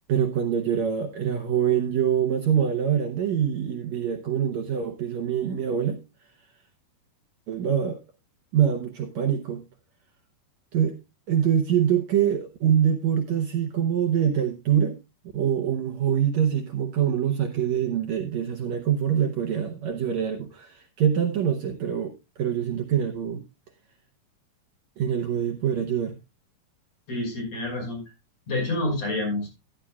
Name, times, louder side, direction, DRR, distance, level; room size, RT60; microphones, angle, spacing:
voice 1, 0.1-6.0 7.5-8.0 8.5-9.6 10.7-11.0 11.3-15.0 15.3-23.4 25.0-26.2, right 9 dB, 70° right, 5 dB, 1.7 m, -24 dB
voice 2, 27.1-28.0 28.5-29.5, left 2 dB, 45° left, 0 dB, 6.5 m, -28 dB
14.0 x 9.8 x 2.3 m, 0.24 s
omnidirectional pair, 4.3 m